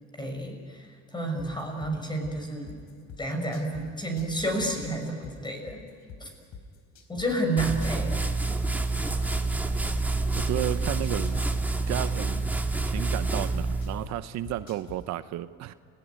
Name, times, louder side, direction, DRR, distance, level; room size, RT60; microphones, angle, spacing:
voice 1, 0.2-0.6 1.1-2.8 3.2-5.8 6.2-6.3 7.1-8.1, right 1 dB, 15° left, 4 dB, 6.0 m, -30 dB
sound 1, 1.4-3.8 4.2-7.3 7.6-10.7 11.0-14.1 14.4-15.0, left 7 dB, 80° left, 4.1 m, -44 dB
sound 2, 7.6-14.1, right 3 dB, 5° right, 1.8 m, -28 dB
voice 2, 10.4-12.5 12.8-15.7, right 13 dB, 65° right, 12 dB, 0.9 m, -33 dB
30.0 x 18.0 x 9.5 m, 2.4 s
cardioid pair, 130°, 29 cm